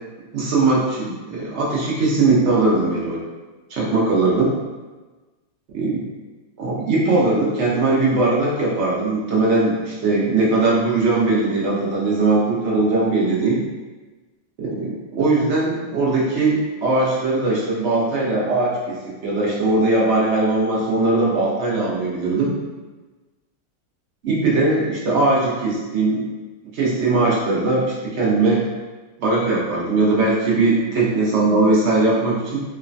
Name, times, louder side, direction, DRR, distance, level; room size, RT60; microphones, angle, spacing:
voice 1, 0.3-3.2 3.7-4.5 5.7-6.0 6.6-13.6 14.6-22.5 24.2-26.2 26.7-28.6 29.2-32.6, right 3 dB, 65° right, -5 dB, 0.7 m, -20 dB
3.1 x 2.1 x 2.5 m, 1.2 s
omnidirectional pair, 1.7 m